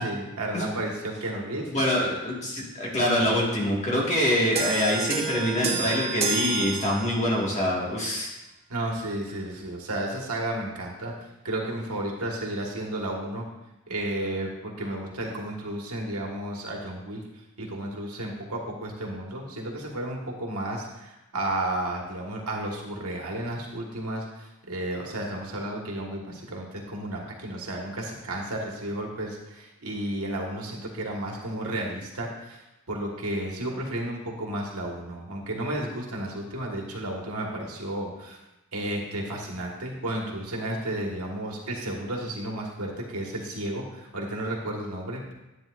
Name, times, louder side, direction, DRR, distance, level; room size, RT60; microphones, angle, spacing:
voice 1, 0.0-1.7 3.1-3.4 8.7-11.1 11.4-13.4 13.9-17.2 17.6-38.4 38.7-45.3, right 1 dB, 85° right, -1 dB, 1.6 m, -32 dB
voice 2, 1.7-8.3, left 1 dB, 30° left, -3 dB, 1.9 m, -25 dB
sound 1, 4.5-7.4, right 5 dB, 30° right, 1.0 m, -30 dB
10.5 x 8.9 x 2.6 m, 0.97 s
head